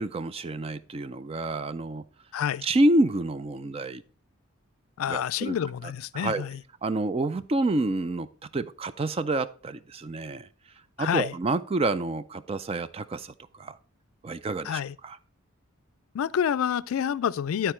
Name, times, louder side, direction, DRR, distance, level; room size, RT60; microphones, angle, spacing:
voice 1, 0.0-2.0 2.6-4.0 5.1-5.6 6.1-6.4 6.8-8.3 8.5-10.5 11.0-13.8 14.2-15.2, right 2 dB, 25° right, 0.3 m, -28 dB
voice 2, 2.3-2.6 5.0-6.6 11.0-11.3 14.6-15.0 16.1-17.7, left 8 dB, 80° left, 0.3 m, -28 dB
11.5 x 4.5 x 4.3 m
head